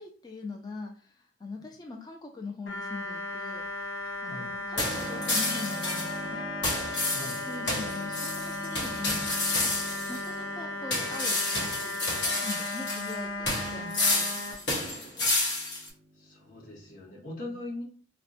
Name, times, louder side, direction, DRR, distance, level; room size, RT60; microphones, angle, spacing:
voice 1, 0.0-3.6 4.2-6.4 7.5-9.7 10.1-14.4 17.5-17.7, left 3 dB, 20° left, 2 dB, 0.3 m, -42 dB
sound 1, 2.7-14.5, left 2 dB, 80° left, 0.7 m, -36 dB
Keyboard (musical), 4.7-17.1, right 1 dB, 30° right, 0.5 m, -46 dB
sound 2, 4.8-6.2 6.6-10.3 10.9-13.2 13.5-15.9, left 2 dB, 65° left, 1.0 m, -30 dB
voice 2, 7.1-7.4 15.2-15.3 16.2-17.8, left 1 dB, 50° left, -5 dB, 1.3 m, -41 dB
4.2 x 2.1 x 2.6 m, 0.42 s
head